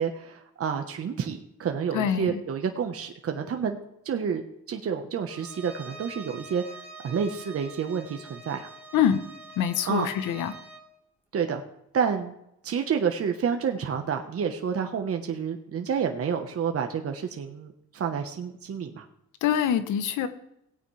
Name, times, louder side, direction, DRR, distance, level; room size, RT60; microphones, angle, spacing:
voice 1, 0.0-3.8 4.0-6.8 7.0-8.7 9.9-10.1 11.3-11.6 11.9-12.3 12.6-19.0, right 7 dB, 50° right, 4 dB, 1.2 m, -29 dB
voice 2, 1.9-2.4 8.9-9.2 9.6-10.5 19.4-20.3, left 9 dB, 85° left, 11 dB, 1.1 m, -25 dB
Bowed string instrument, 5.3-10.9, right 2 dB, 5° right, 2.5 m, -45 dB
17.5 x 9.1 x 3.4 m, 0.79 s
cardioid pair, 90°, 30 cm